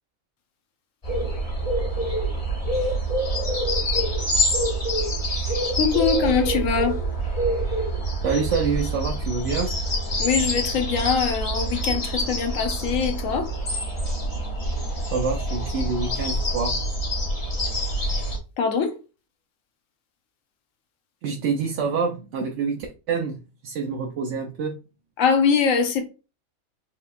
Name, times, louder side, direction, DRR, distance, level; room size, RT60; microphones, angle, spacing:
sound 1, 1.0-18.4, right 1 dB, 30° left, 0.9 m, -26 dB
voice 1, 5.7-7.0 10.2-13.5 18.6-18.9 25.2-26.1, left 6 dB, 85° left, 1.1 m, -23 dB
voice 2, 8.2-9.7 15.1-16.8 21.2-23.4 23.6-24.8, right 5 dB, 70° right, 0.9 m, -26 dB
4.6 x 2.9 x 2.4 m
omnidirectional pair, 1.3 m